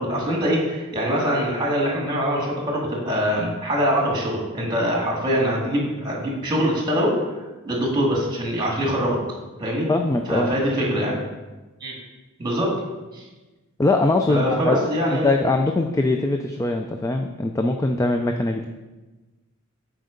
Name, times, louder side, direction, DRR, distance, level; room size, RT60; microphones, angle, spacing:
voice 1, 0.0-7.2 7.6-9.2 9.6-9.9 10.3-11.2 11.8-11.9 12.4-12.7 13.1-13.2 14.3-15.3, equal, 20° right, -2 dB, 2.1 m, -23 dB
voice 2, 9.9-10.5 13.8-14.8 15.1-18.7, left 2 dB, 15° left, 4 dB, 0.3 m, -22 dB
7.9 x 4.6 x 5.1 m, 1.2 s
head